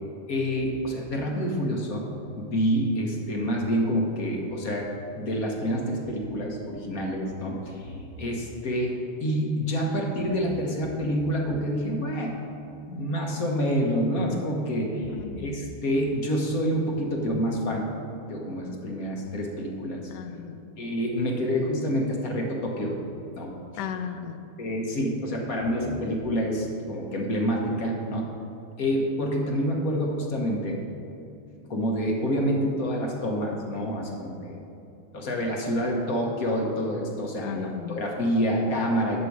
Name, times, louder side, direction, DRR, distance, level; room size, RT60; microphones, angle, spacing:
voice 1, 0.3-2.0 2.4-4.9 5.1-12.5 12.9-17.9 18.3-20.0 20.8-23.0 23.4-23.5 24.6-28.3 28.8-30.8 31.7-34.5 35.1-39.2, equal, 45° left, 0 dB, 1.5 m, -27 dB
voice 2, 15.1-15.7 20.1-20.6 23.8-24.4 37.4-38.0, left 8 dB, 70° left, 8 dB, 1.0 m, -35 dB
11.0 x 7.8 x 4.7 m, 2.8 s
omnidirectional pair, 2.4 m